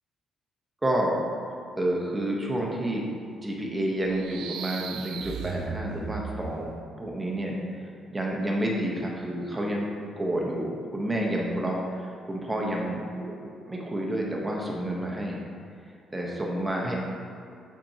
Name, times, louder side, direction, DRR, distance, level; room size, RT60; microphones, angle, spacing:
voice 1, 0.8-1.2 1.8-3.1 3.4-6.7 7.0-9.9 10.2-15.4 16.1-17.0, right 1 dB, 15° right, -2 dB, 1.1 m, -29 dB
sound 1, 4.0-6.9, right 6 dB, 85° right, 0.4 m, -37 dB
8.5 x 4.3 x 2.9 m, 2.4 s
cardioid pair, 90°, 0 cm